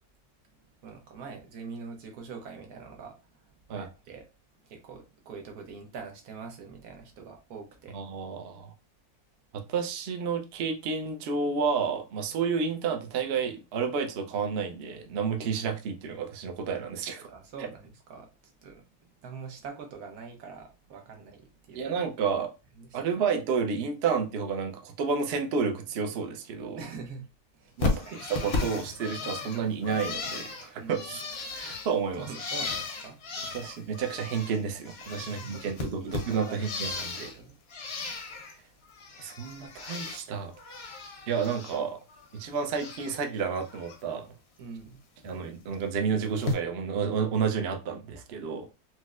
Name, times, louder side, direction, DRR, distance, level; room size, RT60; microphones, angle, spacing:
voice 1, 0.8-4.2 4.6-8.0 17.3-18.8 19.2-22.0 22.8-23.2 26.7-27.3 27.5-28.2 30.8-31.2 32.2-33.5 35.2-37.5 44.6-45.0, right 5 dB, 80° right, 1.3 m, -44 dB
voice 2, 7.9-8.7 9.5-17.3 21.7-22.5 22.9-26.8 27.8-27.9 28.3-31.2 31.5-32.3 33.5-37.3 39.2-40.5 41.3-42.0 42.3-44.3 45.2-48.7, right 6 dB, 65° right, 0.6 m, -30 dB
Bird, 27.8-34.6 34.8-37.4 37.7-38.5 38.9-40.2 40.5-41.8 42.1-43.2 43.5-44.0 45.2-45.4 46.4-46.5, left 3 dB, 55° left, 0.8 m, -35 dB
4.2 x 2.0 x 2.3 m
omnidirectional pair, 1.6 m